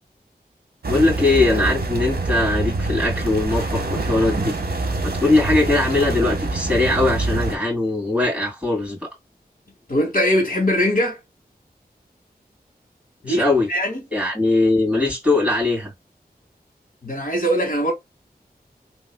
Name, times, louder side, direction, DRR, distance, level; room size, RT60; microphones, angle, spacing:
voice 1, 0.8-4.5 5.0-9.1 13.3-13.7 14.1-15.9, left 2 dB, 10° right, 2.5 m, -20 dB
sound 1, 0.8-7.6, right 2 dB, 70° right, 1.0 m, -25 dB
voice 2, 9.9-11.2 13.2-13.4 13.7-14.0 17.0-17.9, equal, 55° left, 1.7 m, -21 dB
3.4 x 3.0 x 2.2 m
wide cardioid pair, 65°, 17 cm